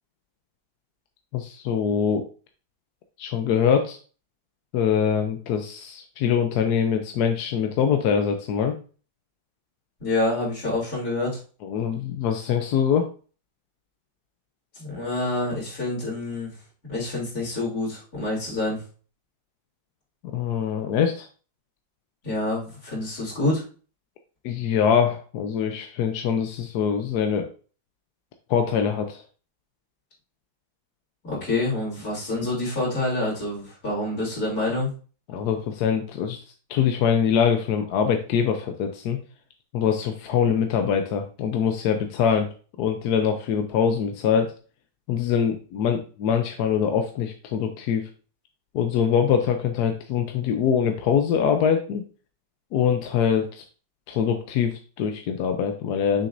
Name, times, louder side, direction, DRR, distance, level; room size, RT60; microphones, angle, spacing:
voice 1, 1.3-2.2 3.2-4.0 4.7-8.8 11.6-13.1 20.3-21.3 24.4-27.5 28.5-29.2 35.3-36.4 36.7-39.2 39.7-42.5 42.8-44.5 45.1-48.1 48.7-52.0 52.7-53.6 54.1-56.3, left 7 dB, 70° left, 5 dB, 1.1 m, -23 dB
voice 2, 10.0-11.4 14.8-16.5 16.9-18.8 22.2-23.6 31.2-34.9, left 2 dB, 50° left, -5 dB, 3.8 m, -27 dB
7.0 x 6.1 x 2.6 m, 0.38 s
omnidirectional pair, 2.1 m